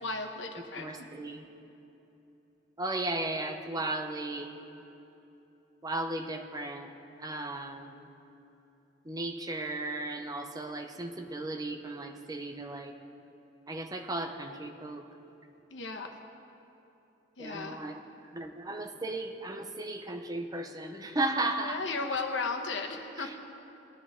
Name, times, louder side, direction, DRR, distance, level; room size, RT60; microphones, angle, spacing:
voice 1, 0.0-1.1 15.7-16.2 17.4-17.8 21.6-23.4, left 3 dB, 75° left, 4 dB, 1.2 m, -35 dB
voice 2, 0.8-1.4 2.8-4.6 5.8-6.9 7.2-8.0 9.0-12.9 13.7-15.0 17.4-18.0 18.3-21.8 23.2-23.3, right 2 dB, 20° right, 5 dB, 0.8 m, -35 dB
20.5 x 11.0 x 3.7 m, 2.9 s
head